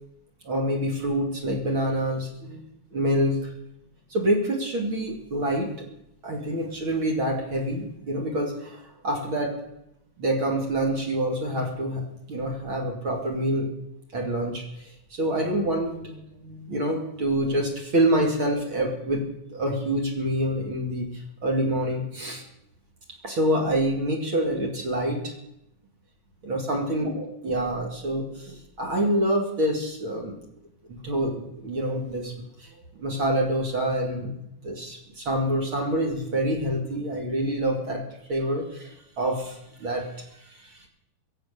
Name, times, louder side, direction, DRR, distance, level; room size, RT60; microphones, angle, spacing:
voice 1, 0.4-2.6 2.9-3.5 4.1-5.8 6.2-9.6 10.2-13.7 14.1-19.2 19.5-22.4 23.2-25.4 26.4-30.3 30.9-32.3 32.6-34.4 34.6-38.0 38.3-40.9, right 1 dB, 40° right, 0 dB, 3.1 m, -27 dB
22.5 x 8.1 x 6.8 m, 0.81 s
omnidirectional pair, 3.7 m